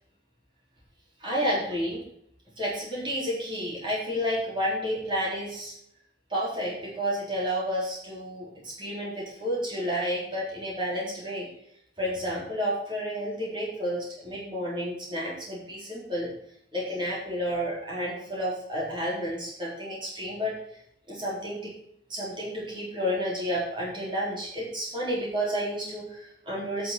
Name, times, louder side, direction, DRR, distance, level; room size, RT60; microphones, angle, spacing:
voice 1, 1.2-2.0 2.6-5.7 6.3-11.5 12.0-16.3 16.7-20.5 21.1-21.7 22.1-26.9, equal, 25° right, -5 dB, 4.0 m, -31 dB
9.0 x 6.7 x 6.0 m, 0.72 s
head